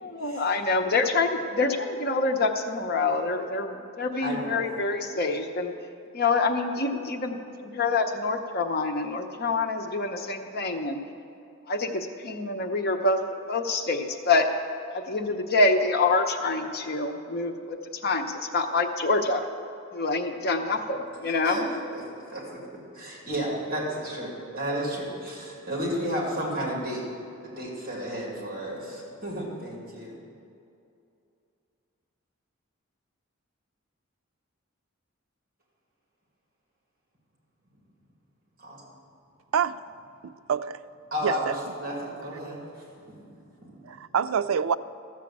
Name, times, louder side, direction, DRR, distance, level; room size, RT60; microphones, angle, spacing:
voice 1, 0.0-5.7 6.1-11.0 11.7-13.2 13.5-14.5 14.9-17.8 18.0-19.5 19.9-21.6, left 3 dB, 50° left, 0.9 m, -26 dB
voice 2, 4.2-4.5 21.4-21.7 21.9-22.6 22.9-27.0 27.4-30.2 38.6-38.8 41.1-42.6 43.0-43.2 43.6-43.8, equal, 45° right, 2.5 m, -32 dB
voice 3, 40.2-40.8 41.2-41.6 43.8-44.8, right 7 dB, 75° right, 0.4 m, -26 dB
13.5 x 7.4 x 7.3 m
head